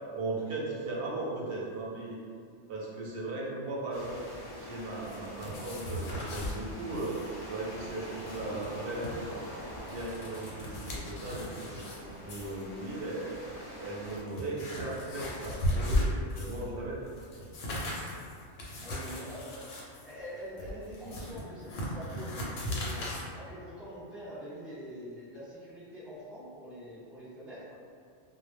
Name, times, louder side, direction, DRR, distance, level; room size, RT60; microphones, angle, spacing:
voice 1, 0.1-2.2 2.7-4.2 4.6-7.2 7.5-9.5 9.9-13.4 13.8-17.0, right 2 dB, 60° right, -5 dB, 0.7 m, -37 dB
sound 1, 3.9-14.2, equal, 40° left, 0.5 m, -45 dB
sound 2, 5.0-6.6 6.9-7.3 7.5-7.6 8.1-9.1 9.7-12.0 12.3-12.6 13.4-13.5 14.0-16.7 17.0-23.2, left 1 dB, 70° left, 0.8 m, -36 dB
voice 2, 18.8-19.7 20.0-23.1 23.3-27.7, equal, ahead, -13 dB, 0.9 m, -44 dB
2.0 x 2.0 x 3.2 m, 2.3 s
omnidirectional pair, 1.2 m